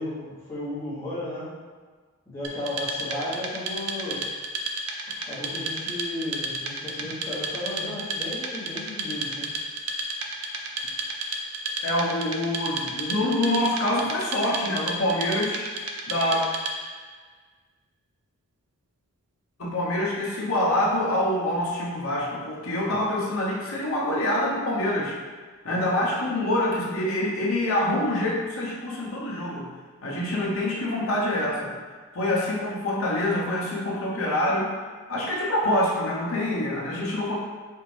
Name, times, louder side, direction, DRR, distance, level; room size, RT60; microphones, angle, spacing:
voice 1, 0.0-1.5 2.3-4.2 5.3-9.5, left 1 dB, 10° left, -11 dB, 1.1 m, -34 dB
Wood, 2.4-17.0, right 2 dB, 85° right, 0.5 m, -32 dB
voice 2, 11.8-15.7 16.1-16.5 19.6-25.2 25.6-29.7 30.0-31.7 32.1-34.7 35.1-37.3, left 1 dB, 70° left, -4 dB, 0.9 m, -26 dB
4.5 x 2.5 x 3.3 m, 1.5 s
head